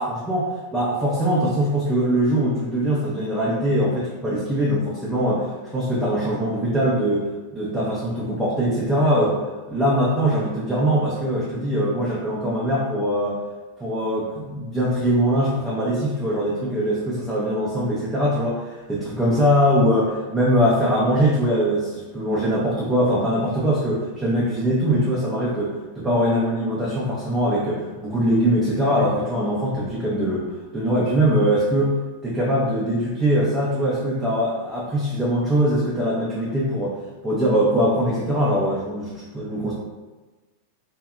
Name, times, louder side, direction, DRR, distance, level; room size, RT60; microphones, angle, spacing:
voice 1, 0.0-5.4 5.7-9.3 9.7-13.4 13.8-30.5 30.7-37.0 37.2-39.7, equal, 10° right, -6 dB, 0.5 m, -22 dB
2.6 x 2.3 x 2.3 m, 1.2 s
figure-of-eight pair, 90°, 0 cm